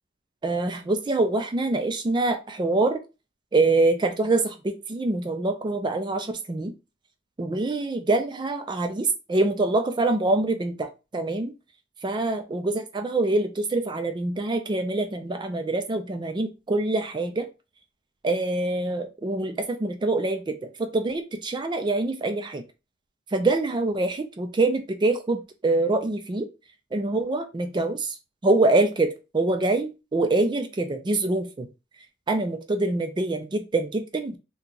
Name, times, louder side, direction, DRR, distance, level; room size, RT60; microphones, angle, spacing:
voice 1, 0.4-3.0 3.5-6.7 7.4-11.5 12.0-17.5 18.2-22.6 23.3-26.5 26.9-28.2 28.4-31.7 32.3-34.4, right 2 dB, 20° right, 7 dB, 0.4 m, -25 dB
2.8 x 2.3 x 3.7 m, 0.28 s
head